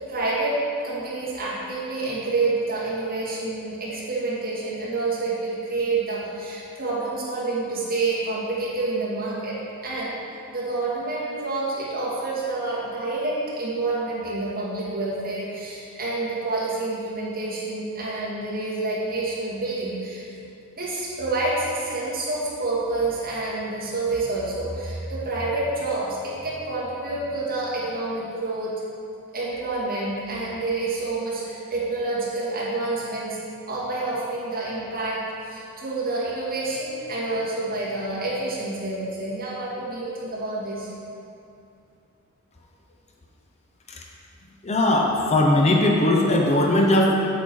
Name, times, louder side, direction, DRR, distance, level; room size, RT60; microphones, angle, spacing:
voice 1, 0.1-0.5 0.8-9.6 9.8-10.2 10.5-20.3 20.7-28.7 29.3-33.4 33.7-40.9, right 2 dB, 40° right, -7 dB, 2.4 m, -28 dB
voice 2, 44.6-47.1, left 1 dB, 30° left, -1 dB, 0.8 m, -19 dB
8.5 x 7.3 x 4.7 m, 2.6 s
head